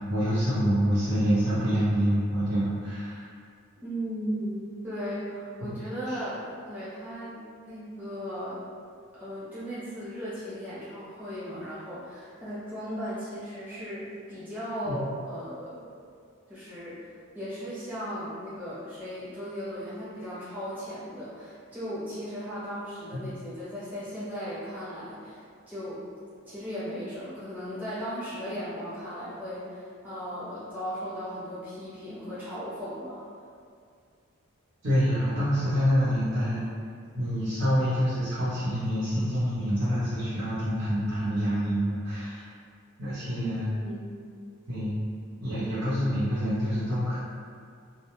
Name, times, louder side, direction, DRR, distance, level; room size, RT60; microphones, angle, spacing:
voice 1, 0.1-3.3 5.6-5.8 6.1-6.2 14.8-15.0 34.8-36.6 37.1-42.4 43.0-43.7 44.7-45.0 45.4-47.2, equal, 60° right, -13 dB, 0.7 m, -26 dB
voice 2, 3.7-6.4 6.6-7.4 7.7-8.6 9.1-15.9 16.5-26.0 26.4-33.2 43.3-44.1, equal, 10° right, -12 dB, 0.8 m, -36 dB
2.3 x 2.1 x 2.9 m, 2.2 s
head